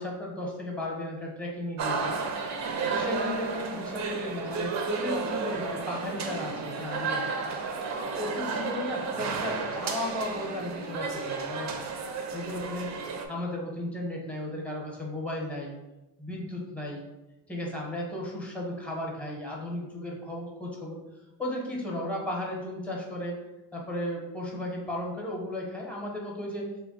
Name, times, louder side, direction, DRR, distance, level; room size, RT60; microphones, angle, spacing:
voice 1, 0.0-2.2 2.9-7.4 8.2-11.7 12.3-12.9 13.3-15.8 16.2-17.0 17.5-21.0 21.4-23.4 23.7-26.7, left 1 dB, 5° left, -2 dB, 0.8 m, -35 dB
sound 1, 1.8-13.3, right 4 dB, 40° right, 0.5 m, -32 dB
3.1 x 2.2 x 4.0 m, 1.0 s
cardioid pair, 110°, 46 cm